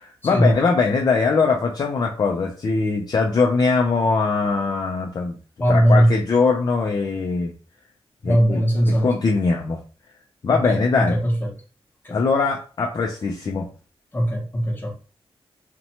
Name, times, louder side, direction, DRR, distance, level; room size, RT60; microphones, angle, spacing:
voice 1, 0.0-5.4 5.7-7.5 8.2-8.6 8.9-9.8 10.4-11.2 12.1-13.7, left 4 dB, 40° left, 0.3 m, -21 dB
voice 2, 5.6-6.1 8.2-9.1 10.7-11.3 12.0-12.2 14.1-14.9, equal, 20° left, 0.8 m, -19 dB
2.7 x 2.1 x 2.8 m
wide cardioid pair, 125°, 10 cm